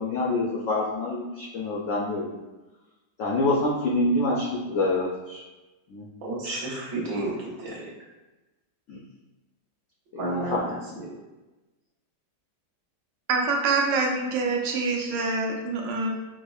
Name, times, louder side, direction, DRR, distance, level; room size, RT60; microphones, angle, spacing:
voice 1, 0.0-2.3 3.2-5.4 5.9-6.1 8.9-9.0 10.1-11.0, left 2 dB, 80° left, -4 dB, 0.7 m, -26 dB
voice 2, 6.2-7.9 10.2-11.1, right 2 dB, 65° right, -5 dB, 1.2 m, -32 dB
voice 3, 13.3-16.1, right 3 dB, 85° right, 0 dB, 1.3 m, -25 dB
5.1 x 2.1 x 2.3 m, 1.1 s
omnidirectional pair, 1.9 m